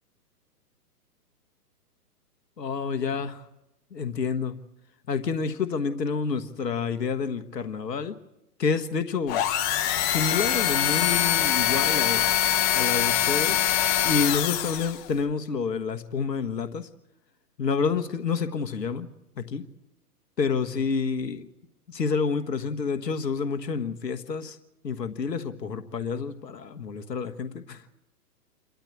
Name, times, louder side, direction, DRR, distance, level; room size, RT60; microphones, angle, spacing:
voice 1, 2.6-3.5 3.9-4.6 5.1-8.2 8.6-9.4 10.0-12.2 12.7-13.7 14.0-16.9 17.6-19.1 19.4-19.7 20.4-21.4 21.9-24.6 24.8-27.8, left 5 dB, 85° left, 1.5 m, -28 dB
sound 1, 9.3-15.1, left 11 dB, 20° left, 0.8 m, -24 dB
28.5 x 13.5 x 8.5 m
hypercardioid pair, 135°, 48 cm